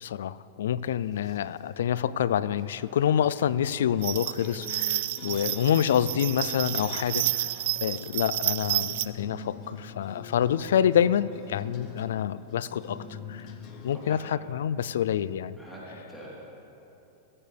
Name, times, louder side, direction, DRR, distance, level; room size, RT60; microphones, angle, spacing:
voice 1, 0.0-7.5 7.8-13.5 13.8-14.2 14.5-15.6, left 9 dB, 80° left, 18 dB, 0.4 m, -27 dB
sound 1, 1.0-1.6 2.6-14.2, left 5 dB, 45° left, 1.3 m, -45 dB
sound 2, 4.0-9.1, right 15 dB, 70° right, 0.4 m, -30 dB
voice 2, 13.4-14.2 15.6-16.3, right 1 dB, 5° left, -8 dB, 3.7 m, -46 dB
16.5 x 15.0 x 3.4 m, 3.0 s
hypercardioid pair, 125°, 0 cm